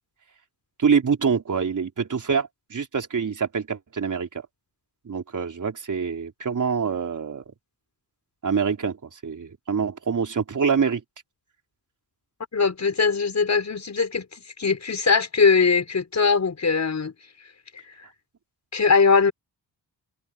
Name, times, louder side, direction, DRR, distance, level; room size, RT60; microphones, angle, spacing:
voice 1, 0.8-4.3 5.1-7.4 8.4-11.0, right 6 dB, 45° right, 3.8 m, -25 dB
voice 2, 12.5-17.1 18.7-19.3, left 5 dB, 40° left, 5.9 m, -21 dB
cardioid pair, 75°, 41 cm